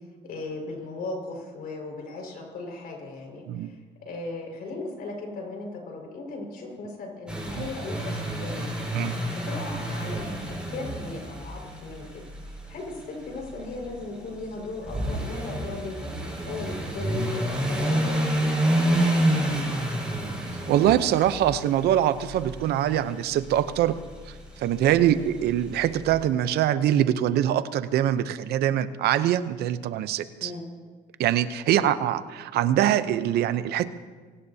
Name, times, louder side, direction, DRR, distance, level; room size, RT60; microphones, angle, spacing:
voice 1, 0.2-3.8 4.0-9.0 9.3-16.0 16.4-18.2 18.7-19.6 25.0-25.3 30.4-30.7 31.7-31.9, left 3 dB, 60° left, 1 dB, 5.2 m, -37 dB
sound 1, 7.3-26.1, right 1 dB, 5° right, 5.4 m, -29 dB
voice 2, 20.7-24.0 24.6-30.5 31.2-33.9, right 11 dB, 75° right, 13 dB, 0.7 m, -23 dB
24.0 x 18.0 x 2.8 m, 1.4 s
cardioid pair, 110°, 17 cm